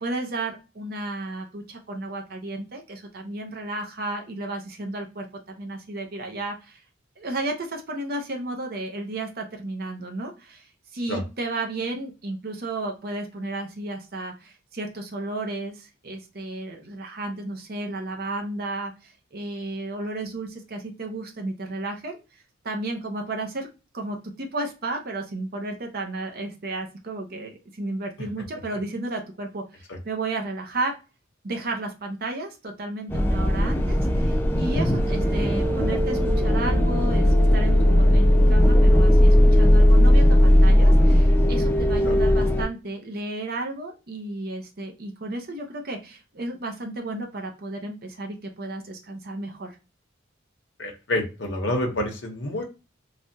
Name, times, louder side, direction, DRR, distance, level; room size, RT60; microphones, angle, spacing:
voice 1, 0.0-5.3 5.6-6.8 7.2-22.2 22.6-23.7 23.9-30.9 31.4-49.8, right 2 dB, 50° right, 2 dB, 0.7 m, -33 dB
sound 1, 33.1-42.6, equal, 10° left, 0.3 m, -17 dB
voice 2, 50.8-52.6, left 1 dB, 60° left, 2 dB, 0.8 m, -28 dB
3.3 x 2.3 x 2.6 m, 0.30 s
head